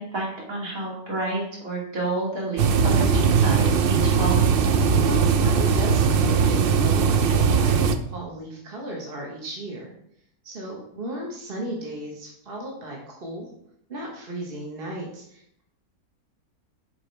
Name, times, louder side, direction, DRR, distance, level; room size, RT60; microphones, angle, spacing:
voice 1, 0.0-4.4, right 2 dB, 65° right, -4 dB, 2.7 m, -30 dB
sound 1, 2.6-8.0, right 6 dB, 80° right, 0.5 m, -19 dB
voice 2, 5.0-7.8 8.1-9.9 10.4-13.5 13.9-15.6, right 1 dB, 40° right, -2 dB, 1.3 m, -35 dB
7.0 x 4.9 x 4.5 m, 0.73 s
omnidirectional pair, 1.6 m